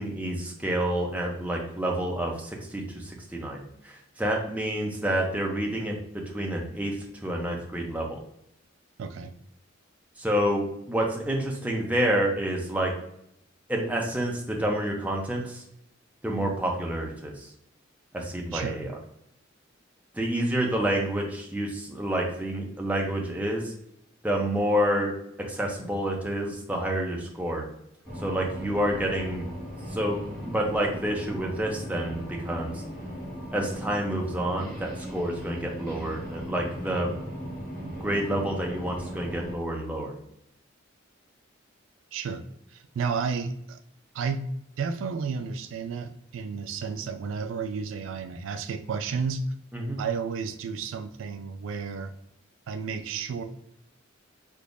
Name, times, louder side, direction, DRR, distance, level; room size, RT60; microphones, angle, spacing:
voice 1, 0.0-7.0 7.2-8.1 10.2-12.9 13.7-15.6 16.2-17.5 18.1-18.9 20.1-23.7 24.2-25.1 25.5-27.7 28.2-29.4 29.9-30.2 30.4-32.7 33.5-37.1 37.4-37.5 37.8-40.1 49.7-50.0, right 1 dB, 10° right, -1 dB, 0.6 m, -28 dB
voice 2, 9.0-9.3 18.5-18.8 42.1-42.4 42.7-43.8 44.1-44.4 44.8-49.4 50.0-52.1 52.7-53.4, right 5 dB, 75° right, 9 dB, 0.3 m, -32 dB
sound 1, 28.0-39.5, equal, 15° left, 1.4 m, -38 dB
3.6 x 2.8 x 2.5 m, 0.76 s
head